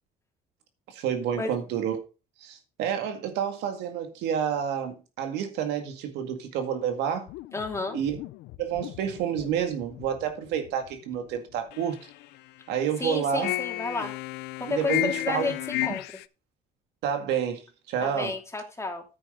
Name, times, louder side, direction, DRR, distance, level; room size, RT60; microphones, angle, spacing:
voice 1, 0.9-2.0 2.4-7.3 7.9-8.2 8.6-12.1 12.7-13.5 14.7-15.5 15.8-15.9 17.0-18.3, right 8 dB, 90° right, 2.1 m, -29 dB
sound 1, 7.3-11.3 11.7-12.6 13.4-16.3, left 16 dB, 85° left, 0.5 m, -34 dB
voice 2, 7.5-8.0 13.0-14.1 14.6-16.0 18.0-19.0, left 3 dB, 15° left, 2.8 m, -32 dB
9.8 x 8.9 x 3.8 m
cardioid pair, 110°, 17 cm